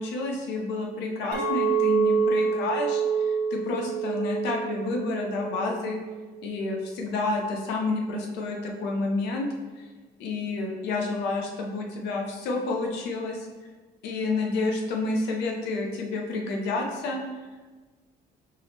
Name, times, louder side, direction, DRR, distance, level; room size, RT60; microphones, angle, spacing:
voice 1, 0.0-6.0 6.4-9.5 9.8-9.9 10.2-13.5 14.0-17.2, left 3 dB, 90° left, 1 dB, 0.8 m, -29 dB
Chink clink, 1.3-6.5, right 6 dB, 80° right, 0.9 m, -27 dB
4.8 x 2.9 x 3.3 m, 1.3 s
cardioid pair, 110°, 17 cm